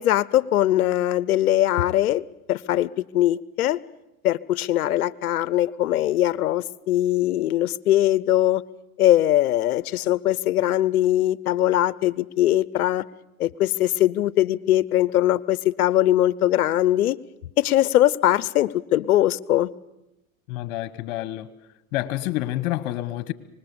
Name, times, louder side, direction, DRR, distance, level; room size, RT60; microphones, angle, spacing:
voice 1, 0.0-3.8 4.2-8.6 9.0-13.0 13.4-17.2 17.6-19.7, left 13 dB, 90° left, 0.7 m, -21 dB
voice 2, 20.5-21.5 21.9-23.3, left 15 dB, 55° left, 1.3 m, -28 dB
25.0 x 20.0 x 7.0 m
hypercardioid pair, 110°, 42 cm